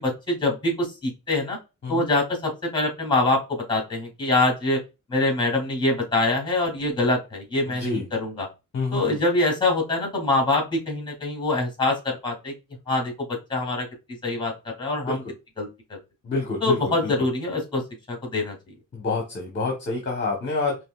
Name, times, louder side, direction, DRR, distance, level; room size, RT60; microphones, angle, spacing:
voice 1, 0.0-1.6 1.9-3.4 3.7-4.8 5.1-8.5 8.9-12.5 12.9-13.1 13.5-13.9 14.2-15.2 15.6-16.0 16.6-17.8 18.1-18.6, left 2 dB, 15° left, 2 dB, 2.2 m, -24 dB
voice 2, 7.7-8.1 8.7-9.2 15.0-15.2 16.2-17.1 18.9-20.7, left 3 dB, 35° left, 0 dB, 1.0 m, -28 dB
5.2 x 3.0 x 2.3 m, 0.27 s
wide cardioid pair, 145°, 32 cm